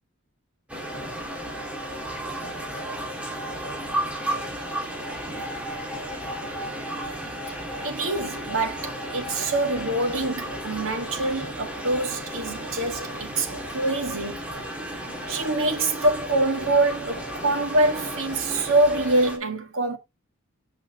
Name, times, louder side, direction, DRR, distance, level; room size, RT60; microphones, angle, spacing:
sound 1, 0.7-19.4, right 1 dB, 5° right, 1.8 m, -33 dB
voice 1, 7.8-14.5 15.3-20.0, right 2 dB, 70° right, 1.9 m, -25 dB
8.3 x 5.6 x 3.0 m
head